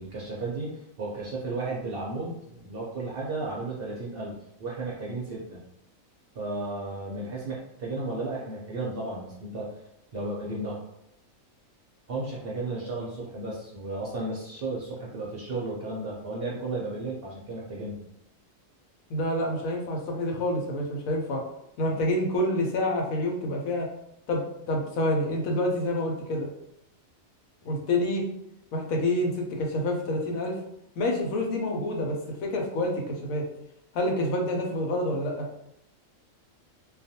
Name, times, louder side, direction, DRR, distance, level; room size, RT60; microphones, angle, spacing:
voice 1, 0.0-5.6 6.3-9.7 10.1-10.8 12.1-18.0, right 2 dB, 60° right, -4 dB, 0.6 m, -34 dB
voice 2, 19.1-21.4 21.8-23.9 24.3-26.5 27.6-28.2 28.7-30.6 31.0-33.5 33.9-35.5, left 1 dB, 85° left, 1 dB, 1.0 m, -27 dB
2.3 x 2.2 x 2.7 m, 0.80 s
omnidirectional pair, 1.4 m